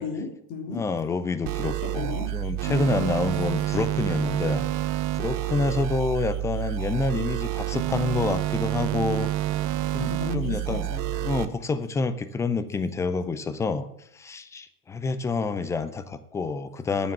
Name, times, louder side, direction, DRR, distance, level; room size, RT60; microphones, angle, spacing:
voice 1, 0.0-0.8 1.8-2.3 2.7-3.0 10.0-11.3, left 3 dB, 45° left, 3 dB, 2.9 m, -35 dB
voice 2, 0.7-4.7 5.2-9.3 9.9-10.9 11.2-13.9 14.1-17.1, left 3 dB, 5° left, 12 dB, 0.3 m, -28 dB
sound 1, 1.5-11.5, right 14 dB, 45° right, 0.8 m, -28 dB
9.2 x 7.1 x 7.5 m, 0.76 s
hypercardioid pair, 100°, 45 cm